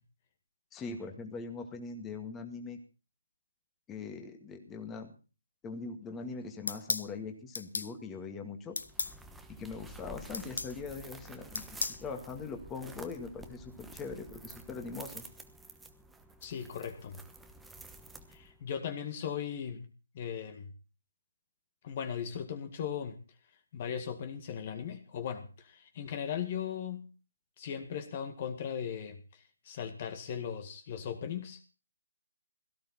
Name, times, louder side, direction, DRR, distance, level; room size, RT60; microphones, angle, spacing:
voice 1, 0.7-2.8 3.9-5.1 5.6-8.8 9.5-15.3, left 4 dB, 10° left, 4 dB, 2.0 m, -41 dB
sound 1, 6.7-7.1 7.5-7.9 8.8-9.1 10.3-10.7 11.5-12.0, left 4 dB, 70° left, 1.3 m, -34 dB
sound 2, 8.8-18.6, right 1 dB, 5° right, 1.2 m, -50 dB
voice 2, 16.4-17.2 18.3-19.9 20.1-20.7 21.8-23.2 23.7-27.1 27.6-31.6, left 8 dB, 35° left, 8 dB, 1.9 m, -38 dB
17.5 x 14.5 x 4.3 m, 0.35 s
figure-of-eight pair, 150°, 0 cm